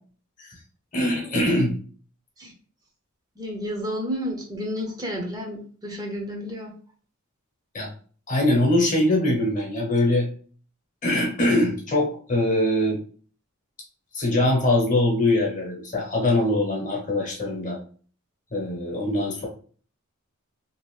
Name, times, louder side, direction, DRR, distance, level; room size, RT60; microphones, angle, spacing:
voice 1, 0.9-1.8 7.7-7.9 8.3-10.3 11.0-13.0 14.1-17.8 18.5-19.5, left 1 dB, 35° left, 0 dB, 0.9 m, -22 dB
voice 2, 3.4-6.7, equal, 20° right, 0 dB, 0.6 m, -31 dB
2.8 x 2.5 x 3.1 m, 0.42 s
head